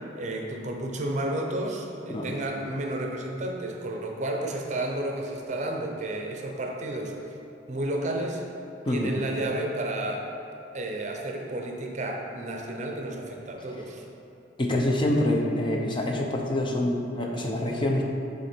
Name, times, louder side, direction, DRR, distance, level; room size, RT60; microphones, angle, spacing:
voice 1, 0.1-7.2 7.7-8.4 8.9-10.3 10.7-14.0, right 1 dB, 40° right, 1 dB, 0.6 m, -31 dB
voice 2, 14.6-18.0, left 1 dB, 25° left, 0 dB, 0.6 m, -26 dB
6.3 x 3.9 x 4.4 m, 2.9 s
head